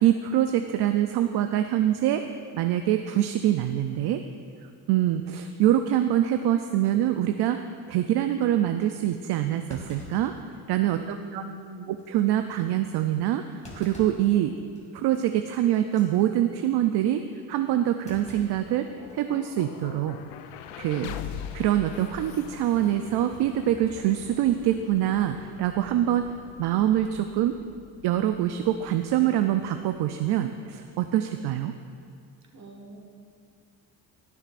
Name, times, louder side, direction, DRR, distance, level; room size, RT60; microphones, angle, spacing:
voice 1, 0.0-2.2 2.5-4.2 4.9-7.6 7.9-10.3 10.7-11.4 11.9-14.5 14.9-18.9 19.1-20.2 20.8-21.2 21.5-26.3 26.6-27.6 28.0-31.7, right 12 dB, 65° right, 7 dB, 0.5 m, -24 dB
Thump thud, 8.8-8.9 9.7-11.0 11.4-11.5 12.0-12.2 13.6-14.3 14.8-15.0 15.8-16.1 18.1-19.3 19.6-19.7 20.8-21.2, left 1 dB, 15° left, 2.3 m, -46 dB
voice 2, 10.9-12.0 32.5-33.0, right 1 dB, 40° right, 1 dB, 1.6 m, -42 dB
sound 1, 18.1-30.1, left 9 dB, 90° left, 0.6 m, -43 dB
18.5 x 6.7 x 2.5 m, 2.3 s
cardioid pair, 95°, 41 cm